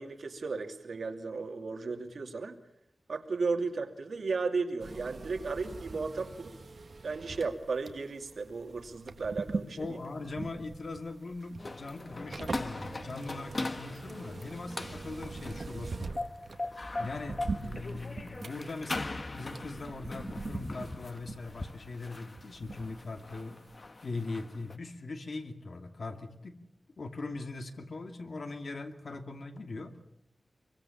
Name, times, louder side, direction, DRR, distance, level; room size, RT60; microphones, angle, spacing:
voice 1, 0.0-2.6 3.1-6.5 7.0-10.0, right 4 dB, 85° right, 4 dB, 2.7 m, -35 dB
sound 1, 4.8-23.4 23.7-23.8, right 3 dB, 60° right, 1.7 m, -43 dB
voice 2, 9.8-16.1 17.0-23.6 24.0-26.6 27.0-29.9, left 3 dB, 65° left, 6 dB, 2.6 m, -40 dB
sound 2, 11.6-24.8, left 2 dB, 40° left, 1.3 m, -40 dB
26.0 x 23.5 x 7.2 m, 0.77 s
wide cardioid pair, 100°, 0 cm